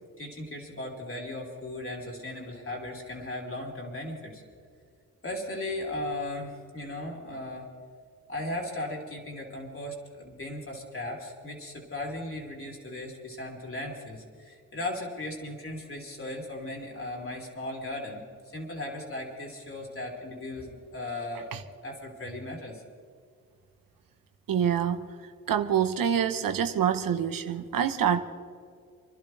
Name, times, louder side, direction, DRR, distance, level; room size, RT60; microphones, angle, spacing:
voice 1, 0.2-4.4 5.2-7.7 8.3-18.2 18.5-21.5 21.8-22.8, left 1 dB, 40° left, -2 dB, 4.8 m, -37 dB
voice 2, 24.5-25.0 25.5-28.2, right 9 dB, 80° right, 7 dB, 1.2 m, -26 dB
28.5 x 12.0 x 3.4 m, 2.2 s
cardioid pair, 65°, 34 cm